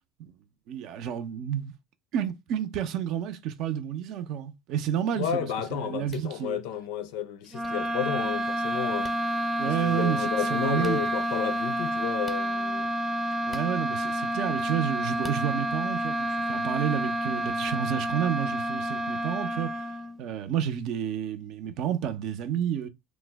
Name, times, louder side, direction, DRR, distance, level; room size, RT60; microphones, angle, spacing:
voice 1, 0.7-1.7 2.1-6.6 9.6-11.0 13.5-19.8 20.2-22.9, right 9 dB, 65° right, 0.5 m, -30 dB
voice 2, 5.2-9.1 9.6-12.9, left 9 dB, 80° left, 0.5 m, -32 dB
sound 1, 6.1-6.3 7.6-7.7 9.0-9.2 10.8-11.0 12.2-12.4 13.5-13.7 15.2-15.4, left 4 dB, 15° left, 0.5 m, -45 dB
sound 2, 7.5-20.2, right 1 dB, 25° right, 0.7 m, -29 dB
3.1 x 2.1 x 3.4 m
supercardioid pair, 105°, 0 cm